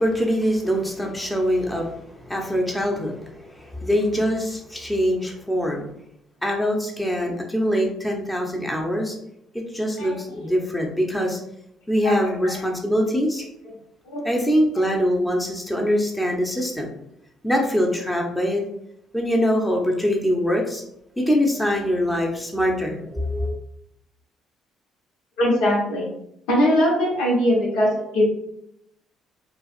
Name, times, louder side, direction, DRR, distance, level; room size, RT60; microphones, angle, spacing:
voice 1, 0.0-5.9 6.4-9.1 9.7-11.4 11.9-13.4 14.2-16.9 17.4-18.6 19.1-20.8 21.2-23.6, equal, 10° left, 1 dB, 0.8 m, -23 dB
voice 2, 10.0-10.6 12.0-12.6 14.0-14.3 14.8-14.9 25.4-26.1 26.5-28.2, equal, 80° left, -2 dB, 1.1 m, -22 dB
4.5 x 2.4 x 2.5 m, 0.77 s
hypercardioid pair, 60°, 0 cm